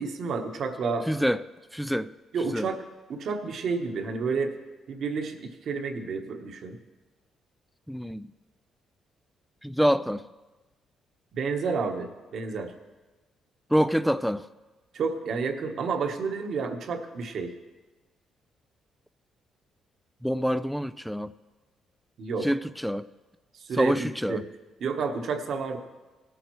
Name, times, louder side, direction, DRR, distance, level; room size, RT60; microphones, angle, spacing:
voice 1, 0.0-1.1 2.3-4.5 4.9-6.8 11.3-12.7 14.9-17.5 22.2-22.5 23.5-24.4 24.8-25.8, right 4 dB, 65° right, 4 dB, 1.2 m, -30 dB
voice 2, 1.1-1.4 1.7-2.1 2.5-2.7 7.9-8.3 9.6-10.2 13.7-14.5 20.2-21.3 22.4-23.1 23.7-24.4, equal, ahead, 14 dB, 0.3 m, -26 dB
17.5 x 8.7 x 3.2 m, 1.2 s
cardioid pair, 75°, 0 cm